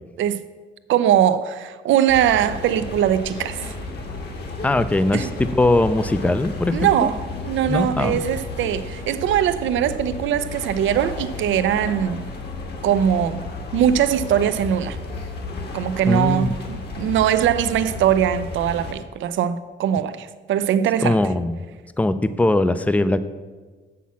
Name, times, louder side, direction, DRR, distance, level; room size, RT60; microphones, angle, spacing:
voice 1, 0.9-3.7 5.1-5.3 6.7-12.3 12.8-13.4 13.7-15.0 15.7-21.2, right 10 dB, 75° right, 0.6 m, -21 dB
sound 1, 2.1-18.9, left 3 dB, 55° left, 1.6 m, -33 dB
voice 2, 4.6-7.1 7.7-8.2 16.1-16.5 21.0-21.6 22.0-23.2, left 2 dB, 5° left, 0.5 m, -20 dB
7.2 x 5.9 x 7.2 m
cardioid pair, 90°, 20 cm